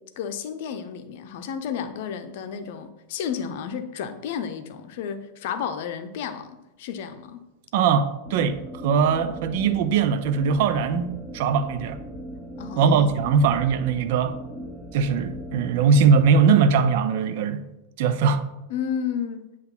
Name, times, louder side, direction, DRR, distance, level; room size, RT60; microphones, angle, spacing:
voice 1, 0.2-6.5 6.8-7.4 12.6-13.3 18.7-19.5, left 7 dB, 50° left, 0.7 m, -32 dB
voice 2, 7.7-12.0 12.8-14.4 14.9-17.6 18.0-18.4, right 6 dB, 50° right, 0.5 m, -21 dB
sound 1, 8.2-16.8, equal, 10° right, 1.2 m, -39 dB
8.0 x 3.1 x 5.7 m
figure-of-eight pair, 90°, 0 cm